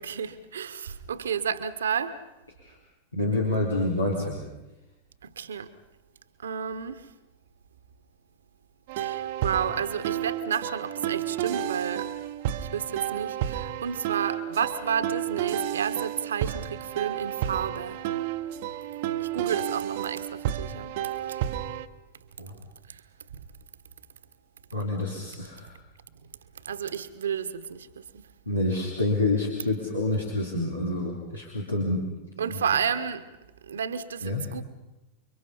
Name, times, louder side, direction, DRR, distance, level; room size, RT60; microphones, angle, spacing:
voice 1, 0.0-2.2 5.2-5.7 6.4-7.1 9.0-12.1 12.6-18.0 19.2-20.9 21.3-21.4 26.7-28.2 32.4-33.2 33.7-34.6, right 7 dB, 65° right, 1.4 m, -31 dB
voice 2, 3.1-4.4 22.4-22.5 24.7-25.7 28.5-32.0 32.4-32.6 34.2-34.4, left 2 dB, 80° left, 3.6 m, -28 dB
sound 1, 8.9-21.9, right 11 dB, 50° right, 1.0 m, -31 dB
30.0 x 23.5 x 5.5 m
figure-of-eight pair, 90°, 0 cm